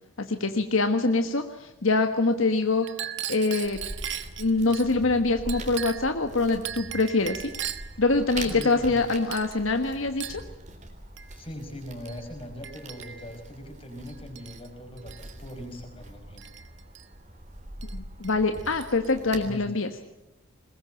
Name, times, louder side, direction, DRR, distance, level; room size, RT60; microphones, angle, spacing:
voice 1, 0.2-2.9 3.3-3.8 4.4-7.5 8.0-10.4 17.9-19.9, left 3 dB, 70° left, 6 dB, 1.5 m, -24 dB
Chink clink, 2.8-4.9 5.5-6.2 6.6-8.0 8.5-9.0 9.3-9.6 10.2-10.5 11.2-11.3 12.1-12.2 12.6-13.3 14.1-14.7 15.0-15.3 16.4-17.0 17.8-17.9 18.2-19.1, right 10 dB, 55° right, 1.2 m, -38 dB
sound 1, 3.6-19.5, right 1 dB, 35° right, 3.6 m, -43 dB
voice 2, 8.5-9.0 11.3-16.4 19.5-19.7, equal, 25° left, 4 dB, 5.4 m, -40 dB
21.5 x 21.0 x 9.0 m, 0.83 s
head